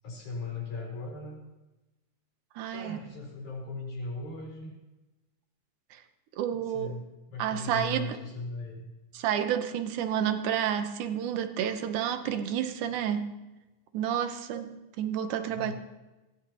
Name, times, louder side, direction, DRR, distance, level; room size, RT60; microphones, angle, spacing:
voice 1, 0.0-1.4 2.7-4.7 6.5-8.9 15.5-15.7, left 3 dB, 75° left, -1 dB, 5.4 m, -38 dB
voice 2, 2.6-3.0 5.9-6.0 6.4-6.9 7.4-8.2 9.1-13.4 13.9-15.7, right 9 dB, 80° right, 8 dB, 2.4 m, -30 dB
21.0 x 16.0 x 2.9 m, 1.1 s
omnidirectional pair, 3.5 m